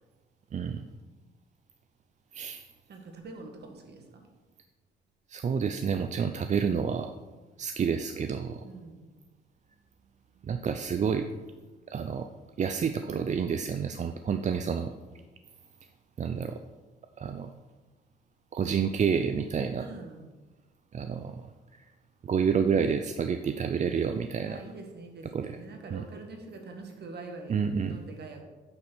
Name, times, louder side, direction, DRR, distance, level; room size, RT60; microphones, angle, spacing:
voice 1, 0.5-0.8 2.3-2.6 5.3-7.1 7.6-8.6 10.4-11.3 11.9-12.3 12.6-14.9 16.2-16.6 17.2-17.5 18.5-19.9 20.9-21.4 21.7-21.8 22.2-24.6 25.3-25.6 25.9-26.0 27.5-28.0, right 6 dB, 35° right, 8 dB, 0.5 m, -29 dB
voice 2, 2.9-4.2 8.6-9.2 19.8-20.3 24.5-27.6 27.9-28.4, right 3 dB, 55° right, 3 dB, 1.7 m, -44 dB
8.6 x 4.3 x 6.1 m, 1.2 s
cardioid pair, 90°, 20 cm